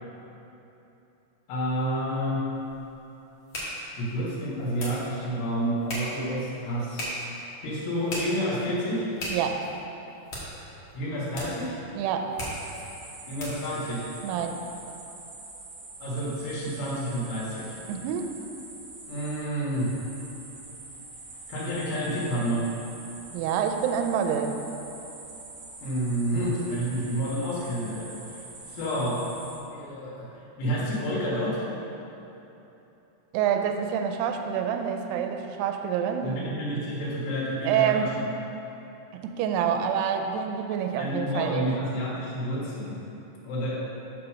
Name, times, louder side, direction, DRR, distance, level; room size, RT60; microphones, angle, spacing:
voice 1, 1.5-2.4 4.0-7.1 7.6-9.1 10.9-11.8 13.3-14.1 16.0-17.8 19.1-19.9 21.5-22.6 25.8-28.4 28.7-29.2 29.7-30.3 30.6-31.7 36.2-38.1 41.0-43.0 43.4-43.8, equal, 85° left, -7 dB, 3.6 m, -29 dB
sound 1, 2.2-13.8, equal, 65° left, 1.3 m, -39 dB
voice 2, 9.3-9.6 12.0-12.3 14.2-14.6 17.9-18.3 23.3-24.5 33.3-36.6 37.6-38.2 39.1-41.7, right 8 dB, 85° right, 5 dB, 2.5 m, -27 dB
sound 2, 12.5-29.6, right 2 dB, 55° right, 2.1 m, -45 dB
6.9 x 4.7 x 6.3 m, 3.0 s
omnidirectional pair, 4.8 m